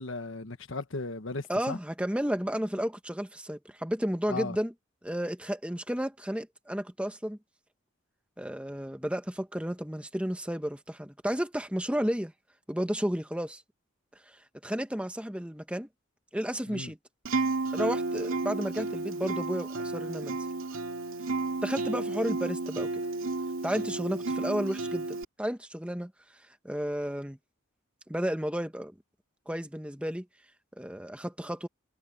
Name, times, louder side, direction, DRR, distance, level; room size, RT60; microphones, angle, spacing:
voice 1, 0.0-1.8 4.3-4.6 16.7-16.9, left 3 dB, 70° left, 1.3 m, -36 dB
voice 2, 1.5-4.7 5.0-7.4 8.4-12.3 12.7-13.6 14.6-15.9 16.3-17.0 17.7-20.4 21.6-23.0 23.6-26.1 26.6-27.4 28.1-28.9 29.5-30.2 30.8-31.7, equal, 5° right, 1.2 m, -32 dB
Acoustic guitar, 17.2-25.2, right 3 dB, 85° right, 2.2 m, -32 dB
head